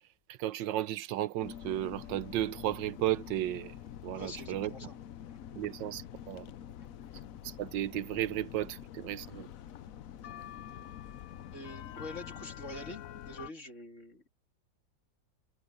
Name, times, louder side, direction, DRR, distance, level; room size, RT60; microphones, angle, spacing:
voice 1, 0.3-3.7 4.0-4.7 5.6-6.5 7.4-9.5, right 14 dB, 80° right, 1.3 m, -34 dB
sound 1, 1.4-13.5, left 10 dB, 65° left, 0.9 m, -46 dB
sound 2, 2.7-13.4, right 1 dB, 40° right, 4.6 m, -65 dB
voice 2, 4.1-5.0 5.3-5.4 5.7-5.8 9.1-9.2 10.2-10.3 11.5-14.3, left 1 dB, 40° left, 3.1 m, -46 dB
omnidirectional pair, 2.0 m